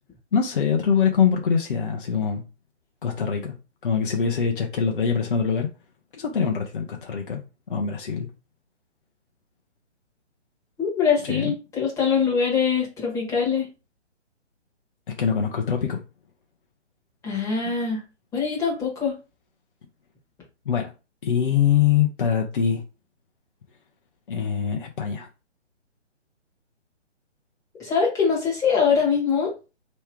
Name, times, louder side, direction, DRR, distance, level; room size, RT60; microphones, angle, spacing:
voice 1, 0.3-2.4 3.0-3.5 3.8-5.7 6.1-7.4 7.7-8.3 11.2-11.5 15.2-16.0 20.7-20.9 21.2-22.8 24.3-25.3, left 7 dB, 45° left, 0.9 m, -23 dB
voice 2, 10.8-13.7 17.2-18.0 18.3-19.1 27.8-29.5, left 6 dB, 10° left, 1.5 m, -23 dB
3.3 x 3.1 x 4.6 m
figure-of-eight pair, 140°, 36 cm